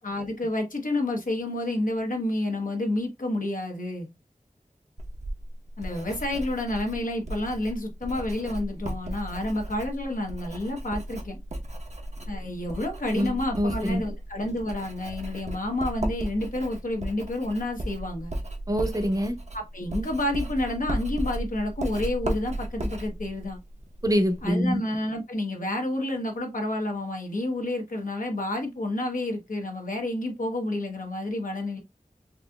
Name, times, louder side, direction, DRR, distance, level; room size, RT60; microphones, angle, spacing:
voice 1, 0.0-4.1 5.8-11.4 12.3-18.3 19.5-23.6 24.4-31.8, left 1 dB, 75° left, 0.9 m, -29 dB
Writing, 5.0-24.5, right 1 dB, 55° right, 0.9 m, -35 dB
voice 2, 13.2-14.0 18.7-19.4 24.0-24.8, equal, 25° right, 0.7 m, -25 dB
4.1 x 2.6 x 2.3 m
wide cardioid pair, 45°, 14 cm